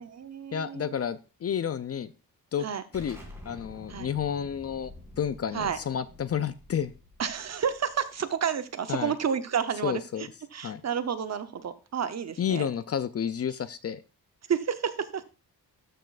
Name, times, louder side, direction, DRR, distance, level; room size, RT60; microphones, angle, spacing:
voice 1, 0.0-1.0 2.6-2.8 3.9-4.1 5.5-5.8 7.2-12.7 14.5-15.2, right 7 dB, 45° right, 11 dB, 0.8 m, -31 dB
voice 2, 0.5-2.1 2.5-2.7 2.9-3.2 3.4-4.9 5.2-6.9 8.9-9.1 9.8-10.3 10.6-10.8 12.4-14.0, left 8 dB, 40° left, 14 dB, 0.4 m, -30 dB
Explosion, 2.9-8.4, left 1 dB, 5° right, 2.2 m, -48 dB
13.0 x 6.2 x 2.4 m, 0.31 s
wide cardioid pair, 160°, 37 cm